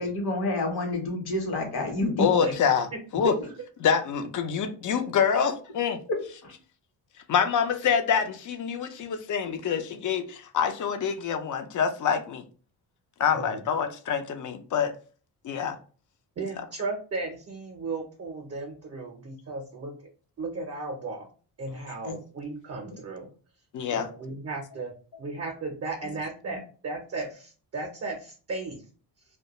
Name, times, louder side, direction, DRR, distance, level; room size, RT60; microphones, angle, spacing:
voice 1, 0.0-2.3 6.4-6.5 24.8-24.9, left 2 dB, 65° left, 1.0 m, -28 dB
voice 2, 2.2-2.8 3.1-3.3 3.8-6.0 7.3-12.4 13.2-14.9 15.4-15.8 22.1-22.2 23.7-24.1, left 7 dB, 50° left, 0.5 m, -26 dB
voice 3, 16.4-20.0 20.4-21.3 21.6-23.3 23.9-24.9 25.2-28.8, right 3 dB, 35° right, 0.6 m, -35 dB
2.2 x 2.2 x 2.9 m
cardioid pair, 105°, 41 cm